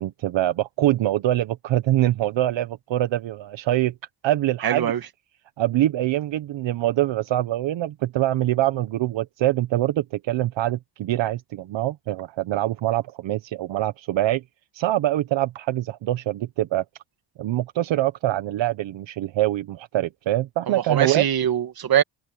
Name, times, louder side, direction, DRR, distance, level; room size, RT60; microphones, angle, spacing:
voice 1, 0.0-3.9 4.2-4.9 5.6-14.4 14.7-16.8 17.4-21.2, right 14 dB, 65° right, 1.3 m, -24 dB
voice 2, 4.6-5.0 20.7-22.0, right 10 dB, 45° right, 1.9 m, -22 dB
cardioid pair, 95°, 49 cm